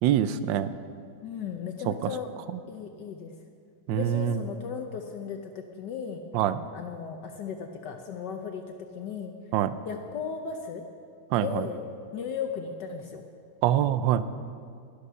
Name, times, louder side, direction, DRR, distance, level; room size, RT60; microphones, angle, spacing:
voice 1, 0.0-0.7 1.9-2.1 3.9-4.4 6.3-6.6 9.5-9.7 11.3-11.6 13.6-14.2, right 11 dB, 75° right, 13 dB, 1.2 m, -24 dB
voice 2, 1.2-2.3 2.7-3.3 3.9-6.2 6.7-9.3 9.9-10.8 11.3-11.8 12.1-13.2, left 6 dB, 65° left, 4 dB, 1.2 m, -36 dB
12.0 x 12.0 x 5.5 m, 2.3 s
omnidirectional pair, 2.3 m